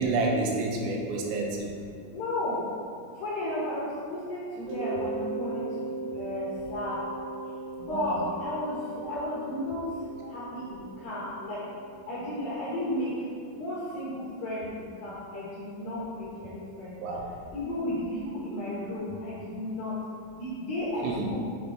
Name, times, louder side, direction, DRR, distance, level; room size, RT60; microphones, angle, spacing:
voice 1, 0.0-1.8 7.9-8.2 17.0-17.3 21.0-21.3, right 3 dB, 85° right, 0 dB, 3.5 m, -29 dB
voice 2, 2.1-2.6 3.2-5.6 6.1-7.0 7.9-8.8 9.0-9.8 10.3-11.6 12.1-13.1 13.5-14.6 15.0-16.9 17.5-18.1 18.3-19.9 20.4-21.4, left 1 dB, 75° left, -8 dB, 2.1 m, -33 dB
Mallet percussion, 4.7-13.3, right 3 dB, 65° right, 2.3 m, -39 dB
7.7 x 6.2 x 3.9 m, 2.3 s
omnidirectional pair, 5.9 m